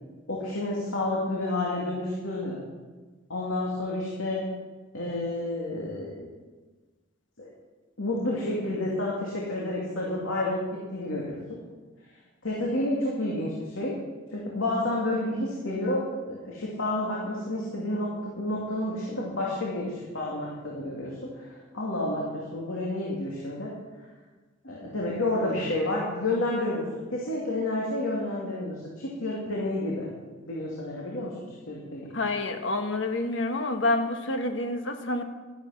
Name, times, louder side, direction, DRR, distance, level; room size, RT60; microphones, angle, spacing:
voice 1, 0.3-2.6 3.3-4.4 4.9-6.3 7.4-7.5 8.0-11.6 12.4-14.0 14.3-23.7 24.6-30.1 30.5-31.3 31.7-32.2, left 1 dB, 85° left, -4 dB, 2.6 m, -30 dB
voice 2, 32.1-35.2, left 2 dB, 65° left, 5 dB, 1.4 m, -28 dB
12.5 x 11.0 x 6.0 m, 1.3 s
head